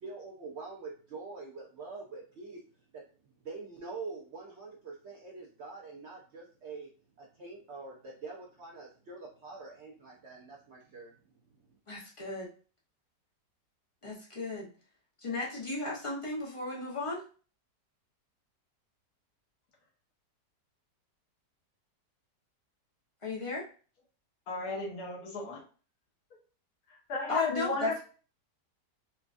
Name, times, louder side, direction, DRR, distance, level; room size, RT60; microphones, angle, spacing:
voice 1, 0.0-2.6 3.4-6.9 7.2-11.1, right 4 dB, 75° right, -1 dB, 0.6 m, -45 dB
voice 2, 11.9-12.5 14.0-14.7 15.2-17.2 23.2-23.7 27.3-28.0, left 3 dB, 35° left, -4 dB, 0.5 m, -35 dB
voice 3, 24.5-25.6 26.9-28.0, left 3 dB, 65° left, -1 dB, 1.5 m, -34 dB
4.2 x 2.4 x 2.4 m, 0.38 s
omnidirectional pair, 1.8 m